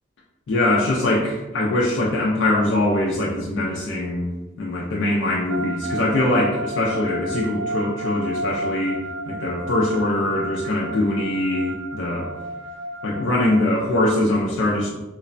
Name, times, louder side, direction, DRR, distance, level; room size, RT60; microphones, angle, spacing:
voice 1, 0.5-4.3 4.6-9.0 9.3-12.3 13.0-14.9, left 1 dB, 70° left, -3 dB, 0.4 m, -22 dB
sound 1, 5.5-13.9, right 1 dB, 85° right, 0.3 m, -32 dB
2.9 x 2.1 x 2.5 m, 1.1 s
head